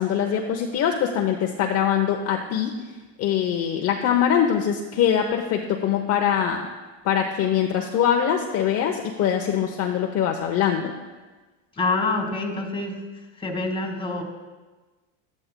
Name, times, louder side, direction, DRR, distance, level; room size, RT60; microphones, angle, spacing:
voice 1, 0.0-2.7 3.2-6.7 7.0-10.9, left 9 dB, 40° left, 2 dB, 0.8 m, -23 dB
voice 2, 11.7-12.9 13.4-14.2, left 3 dB, 15° left, 2 dB, 1.9 m, -26 dB
13.5 x 12.5 x 2.2 m, 1.3 s
supercardioid pair, 120°, 39 cm